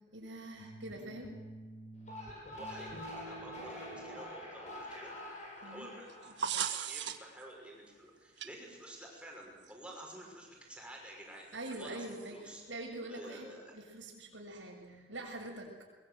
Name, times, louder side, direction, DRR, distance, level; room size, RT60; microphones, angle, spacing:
voice 1, 0.1-1.3 5.6-5.9 11.5-13.5 13.7-15.8, right 1 dB, 90° right, 1 dB, 6.6 m, -44 dB
sound 1, 0.6-2.3 2.6-4.2, right 1 dB, 85° left, 2.3 m, -50 dB
sound 2, 1.9-7.3, left 1 dB, 40° left, 7.7 m, -46 dB
voice 2, 2.4-5.1 5.6-6.1 6.7-12.6 13.1-13.8, right 1 dB, 5° right, -1 dB, 5.9 m, -50 dB
sound 3, 6.1-7.4 8.4-8.5 9.7-9.8 11.6-12.3, right 8 dB, 70° right, 1.4 m, -37 dB
22.5 x 21.5 x 8.1 m, 1.4 s
head